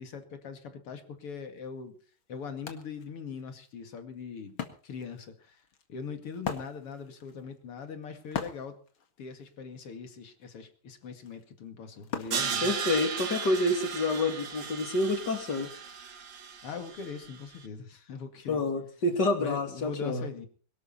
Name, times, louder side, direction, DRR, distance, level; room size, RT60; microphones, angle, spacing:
voice 1, 0.0-2.0 2.3-4.5 4.8-5.6 5.9-8.8 9.2-12.7 16.6-18.7 19.4-20.5, left 6 dB, 90° left, 7 dB, 3.2 m, -41 dB
Wood, 1.6-1.7 2.1-13.3, left 7 dB, 65° left, 2.7 m, -42 dB
Crash cymbal, 12.3-17.4, right 6 dB, 60° right, 2.3 m, -36 dB
voice 2, 12.6-15.7 18.5-20.3, left 2 dB, 50° left, 6 dB, 3.2 m, -28 dB
23.0 x 12.5 x 4.3 m, 0.41 s
omnidirectional pair, 2.4 m